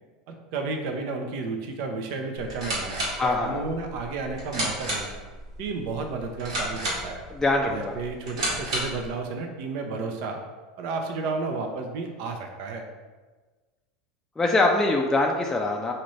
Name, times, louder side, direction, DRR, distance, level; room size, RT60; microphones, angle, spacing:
voice 1, 0.3-5.1 5.6-7.2 7.6-10.4 10.8-12.8, right 3 dB, 65° right, 4 dB, 0.6 m, -32 dB
sound 1, 2.4-9.1, right 1 dB, 90° right, 1.5 m, -32 dB
voice 2, 3.2-3.6 7.3-8.0 14.4-15.9, left 2 dB, 15° left, 1 dB, 0.4 m, -23 dB
4.2 x 2.5 x 3.1 m, 1.3 s
hypercardioid pair, 100°, 3 cm